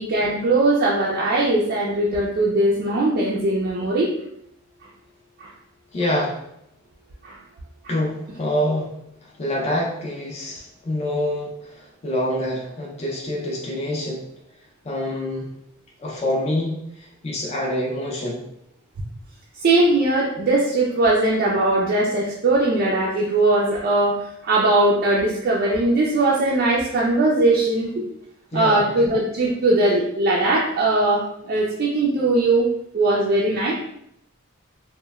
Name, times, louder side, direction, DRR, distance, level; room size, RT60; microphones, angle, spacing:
voice 1, 0.0-4.1 5.4-5.5 7.2-7.4 19.6-28.1 28.5-32.7 32.9-33.7, right 2 dB, 45° right, -5 dB, 0.3 m, -20 dB
voice 2, 5.9-6.4 7.9-8.9 9.2-14.2 14.8-15.5 16.0-18.4 28.5-29.1, left 1 dB, 30° left, -2 dB, 0.4 m, -26 dB
3.0 x 2.1 x 2.2 m, 0.76 s
head